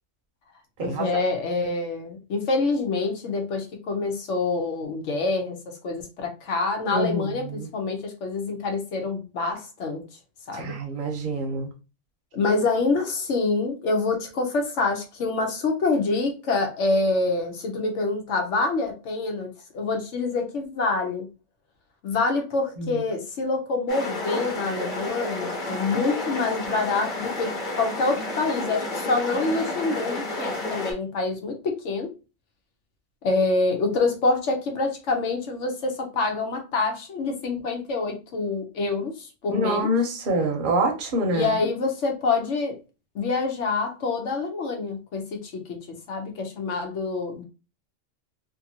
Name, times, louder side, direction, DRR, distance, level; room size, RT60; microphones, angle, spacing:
voice 1, 0.8-10.1 10.5-10.8 12.3-21.3 22.0-32.1 33.2-39.9 41.3-42.8 43.1-45.8 46.1-47.4, left 3 dB, 70° left, 4 dB, 1.1 m, -26 dB
voice 2, 6.9-7.7 10.5-11.7 22.8-23.0 39.5-41.6, right 1 dB, 50° right, 2 dB, 0.8 m, -26 dB
sound 1, 23.9-30.9, left 2 dB, 45° left, 1.1 m, -31 dB
2.7 x 2.5 x 2.7 m, 0.31 s
omnidirectional pair, 1.3 m